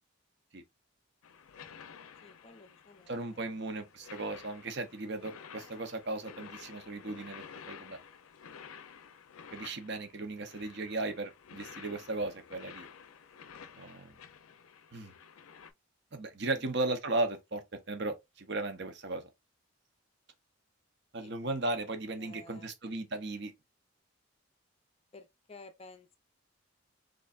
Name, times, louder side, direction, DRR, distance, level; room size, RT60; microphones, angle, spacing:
sound 1, 1.2-15.7, left 7 dB, 85° left, 0.5 m, -52 dB
voice 1, 2.2-3.7 16.6-16.7 21.2-21.6 22.2-22.7 25.1-26.2, left 2 dB, 30° left, 0.5 m, -54 dB
voice 2, 3.1-8.0 9.5-12.9 13.8-14.1 14.9-15.1 16.1-19.2 21.1-23.5, right 2 dB, 50° right, 0.7 m, -36 dB
3.8 x 3.3 x 2.4 m
head